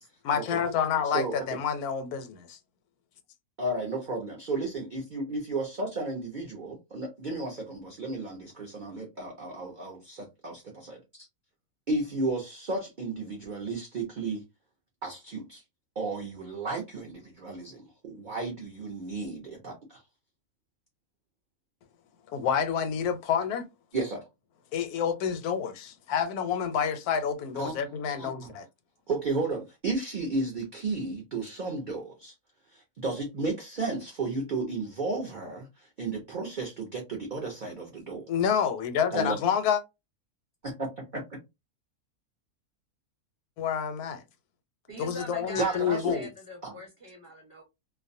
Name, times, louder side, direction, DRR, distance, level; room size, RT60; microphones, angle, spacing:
voice 1, 0.2-2.6 22.3-23.7 24.7-28.6 38.3-39.8 43.6-44.2 45.0-46.3, left 7 dB, 85° left, 1.1 m, -28 dB
voice 2, 1.0-1.4 3.6-4.8 5.1-11.3 11.9-14.4 15.0-15.6 16.0-20.0 23.9-24.3 27.6-27.8 28.1-28.5 29.1-32.3 32.7-38.2 39.1-39.4 40.6-41.2 45.6-46.1 46.6-46.7, right 3 dB, 55° right, 0.5 m, -33 dB
voice 3, 44.9-47.6, equal, 25° right, 1.1 m, -42 dB
2.5 x 2.1 x 2.5 m
omnidirectional pair, 1.6 m